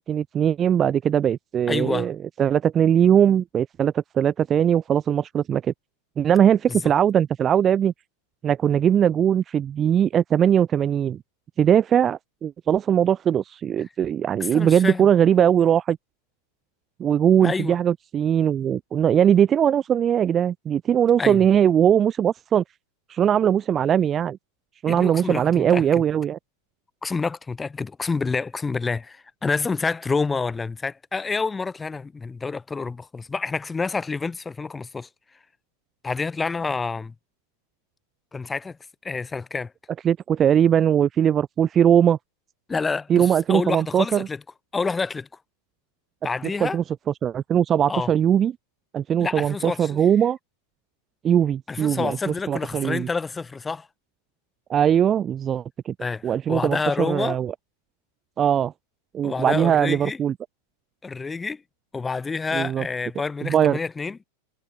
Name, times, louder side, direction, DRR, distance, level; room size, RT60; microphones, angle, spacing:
voice 1, 0.0-5.7 6.2-7.9 8.4-11.2 11.6-16.0 17.0-22.6 23.1-24.4 24.8-26.4 40.0-42.2 43.1-44.3 46.6-46.8 47.2-48.5 48.9-50.4 51.2-53.1 54.7-55.9 56.2-57.5 58.4-58.7 59.1-60.3 62.5-62.9 63.4-63.8, right 9 dB, 25° right, 2.1 m, -20 dB
voice 2, 1.7-2.1 6.7-6.8 14.4-15.1 17.4-17.8 21.2-21.4 24.9-26.0 27.0-35.1 36.0-37.1 38.3-38.8 39.0-39.7 42.7-44.4 44.7-45.3 46.2-46.8 47.9-48.1 49.2-50.0 51.7-53.9 56.0-57.4 59.2-60.2 61.0-61.6 61.9-64.2, left 4 dB, 15° left, 6.7 m, -28 dB
figure-of-eight pair, 90°, 0 cm